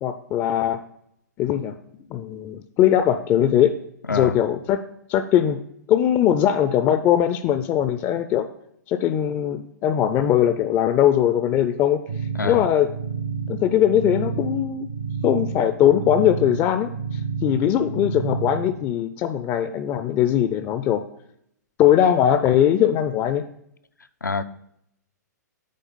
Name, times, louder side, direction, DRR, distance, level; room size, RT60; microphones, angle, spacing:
voice 1, 0.0-0.8 1.4-1.8 2.1-3.7 4.1-4.8 5.1-5.6 5.9-8.5 8.9-12.0 12.4-12.9 13.5-14.9 15.2-16.9 17.4-21.0 21.8-23.4, left 10 dB, 25° left, 0.4 m, -20 dB
sound 1, 12.1-18.8, right 5 dB, 70° right, 0.9 m, -30 dB
voice 2, 12.3-12.7 24.2-24.4, left 4 dB, 85° left, 0.4 m, -26 dB
9.3 x 3.4 x 5.4 m
figure-of-eight pair, 110°, 10 cm